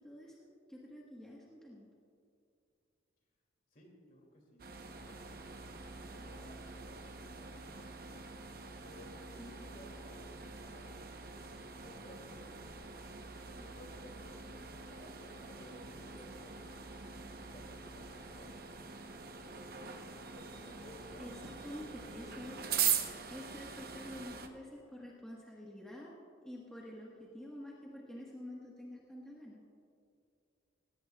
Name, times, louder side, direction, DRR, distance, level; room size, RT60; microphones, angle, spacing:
voice 1, 0.0-1.9 9.4-9.7 21.2-22.7 23.3-26.1 26.4-29.6, left 1 dB, 5° left, -5 dB, 1.3 m, -48 dB
voice 2, 3.7-4.7 5.1-5.8 6.1-7.9 8.8-10.9 11.4-13.0 13.5-16.8 17.4-18.6 20.3-21.4 21.7-21.9, equal, 45° left, 0 dB, 2.5 m, -57 dB
sound 1, 4.6-24.5, right 7 dB, 50° right, 0.9 m, -42 dB
17.5 x 17.0 x 2.3 m, 2.5 s
head